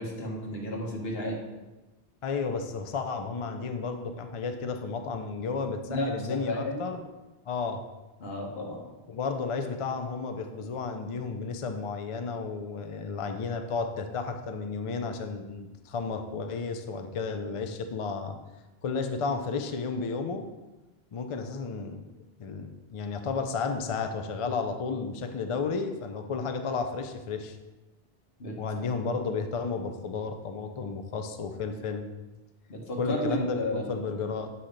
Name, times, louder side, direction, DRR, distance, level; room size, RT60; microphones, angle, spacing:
voice 1, 0.0-1.4 5.9-6.9 8.2-8.8 28.4-28.6 32.7-34.0, left 1 dB, 70° left, -1 dB, 1.4 m, -33 dB
voice 2, 2.2-7.0 7.5-7.8 9.1-18.4 18.8-20.5 21.1-22.0 22.4-27.6 28.6-32.1 33.0-34.5, left 4 dB, 50° left, 6 dB, 0.4 m, -32 dB
7.5 x 2.8 x 5.0 m, 1.1 s
omnidirectional pair, 1.0 m